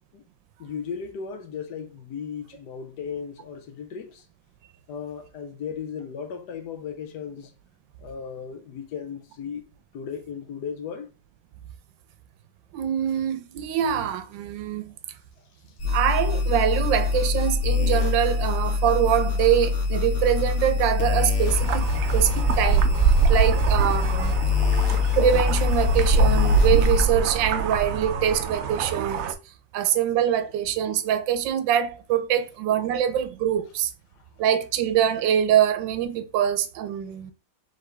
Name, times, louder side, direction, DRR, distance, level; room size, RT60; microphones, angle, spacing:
voice 1, 0.6-4.2 4.9-7.5 8.0-9.6 9.9-11.1 23.2-23.3, left 7 dB, 70° left, 1.3 m, -36 dB
voice 2, 12.7-14.9 15.9-21.8 22.1-23.0 23.3-24.4 25.2-29.4 29.7-33.9 34.4-37.3, right 9 dB, 90° right, 1.3 m, -24 dB
sound 1, 15.8-27.0, left 5 dB, 50° left, 1.1 m, -24 dB
sound 2, 21.5-29.3, right 6 dB, 70° right, 0.8 m, -24 dB
3.8 x 3.5 x 3.3 m
omnidirectional pair, 2.0 m